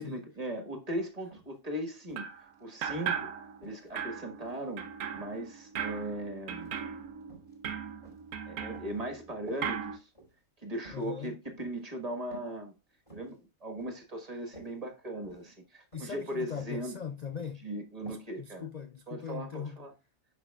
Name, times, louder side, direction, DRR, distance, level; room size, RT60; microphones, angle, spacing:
voice 1, 0.0-3.3 3.6-6.8 8.5-10.1 10.6-12.7 13.1-16.9 17.6-18.7 19.1-19.9, right 1 dB, 25° right, 1.5 m, -38 dB
sound 1, 0.9-1.0 1.3-1.6 2.1-3.1 3.6-4.7 5.1-6.1 6.5-6.9 7.2-7.6 8.0-9.0 9.4-9.7 10.1-10.4 10.8-11.1 11.6-11.8 12.3-12.6 12.9-13.3 13.8-14.1 14.3-14.7 15.2-15.6 15.9-16.2 16.6-16.9 17.1-17.5 18.1-18.3 18.6-18.7, right 2 dB, 25° left, 3.9 m, -53 dB
sound 2, 2.2-2.4 2.8-3.7 4.0-9.3 9.6-10.0, right 7 dB, 85° right, 1.2 m, -38 dB
voice 2, 10.9-11.4 15.9-17.7 18.0-19.8, left 7 dB, 75° left, 0.3 m, -40 dB
9.9 x 5.7 x 2.3 m
omnidirectional pair, 1.5 m